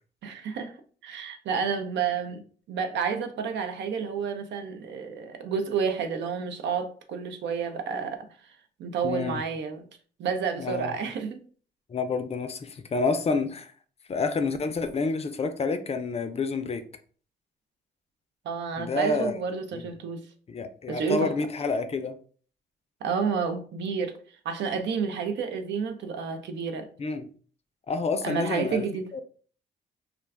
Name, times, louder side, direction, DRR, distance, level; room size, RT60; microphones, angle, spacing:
voice 1, 0.2-0.8 1.0-2.4 2.7-8.3 8.8-9.8 10.2-11.4 18.5-20.2 20.9-21.3 23.0-24.2 24.4-26.9 28.2-29.1, right 6 dB, 75° right, 0.5 m, -30 dB
voice 2, 9.0-9.4 10.6-10.9 11.9-13.7 14.1-16.8 18.8-19.4 19.7-19.8 20.5-22.2 27.0-27.3 27.9-28.8 29.1-29.2, left 4 dB, 35° left, 0.4 m, -28 dB
2.3 x 2.3 x 3.3 m
cardioid pair, 75°, 18 cm